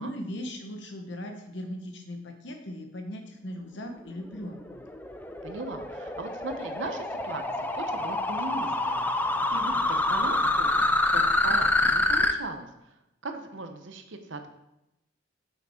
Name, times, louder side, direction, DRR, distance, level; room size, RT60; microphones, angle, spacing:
voice 1, 0.0-4.8, equal, 60° left, 4 dB, 1.1 m, -38 dB
sound 1, 4.3-12.3, left 2 dB, 10° left, 0.4 m, -26 dB
voice 2, 5.4-9.1 9.5-10.7 11.1-12.7 13.2-14.5, right 2 dB, 65° right, 7 dB, 0.8 m, -38 dB
6.2 x 6.0 x 4.4 m, 0.90 s
head